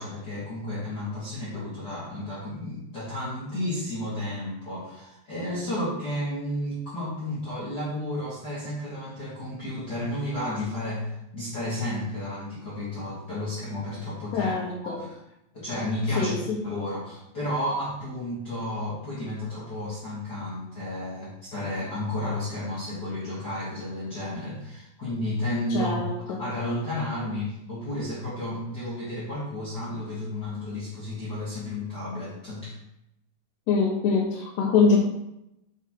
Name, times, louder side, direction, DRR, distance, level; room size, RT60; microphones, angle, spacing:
voice 1, 0.0-14.5 14.8-15.2 15.5-16.3 16.6-26.0 26.4-32.8, left 1 dB, 50° left, -8 dB, 1.2 m, -32 dB
voice 2, 14.3-15.0 16.2-16.6 25.7-26.4 33.7-35.0, left 4 dB, 90° left, -3 dB, 3.2 m, -24 dB
7.0 x 6.1 x 3.7 m, 0.84 s
omnidirectional pair, 4.7 m